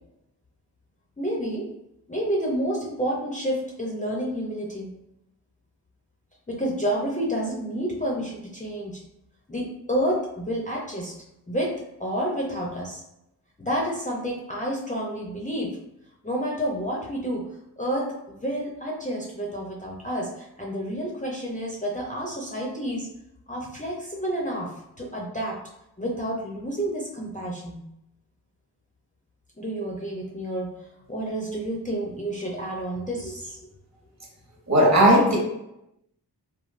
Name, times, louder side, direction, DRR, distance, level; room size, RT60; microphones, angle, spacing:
voice 1, 1.2-1.7 2.1-4.9 6.5-9.0 9.5-11.1 11.5-13.0 13.6-15.8 16.2-23.1 23.5-25.6 26.0-27.8 29.6-30.8 31.1-33.7, equal, 20° left, -3 dB, 0.4 m, -29 dB
voice 2, 34.7-35.4, right 1 dB, 40° right, -3 dB, 1.0 m, -16 dB
3.1 x 2.3 x 2.4 m, 0.85 s
wide cardioid pair, 95°, 40 cm